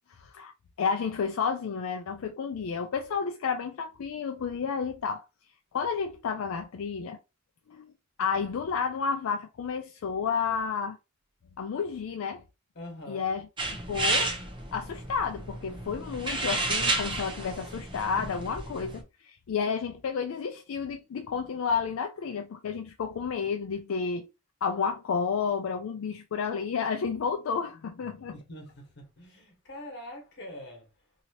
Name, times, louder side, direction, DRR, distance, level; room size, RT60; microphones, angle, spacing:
voice 1, 0.1-0.5 0.8-5.2 5.7-7.2 7.7-7.9 8.2-11.0 11.6-12.4 13.1-13.5 13.9-14.4 14.7-24.3 24.6-28.3, left 6 dB, 85° left, 0.4 m, -31 dB
voice 2, 12.7-13.3 28.3-30.9, left 1 dB, 55° left, 1.4 m, -44 dB
sound 1, 13.6-19.0, right 2 dB, 25° right, 0.7 m, -31 dB
2.8 x 2.8 x 2.8 m
head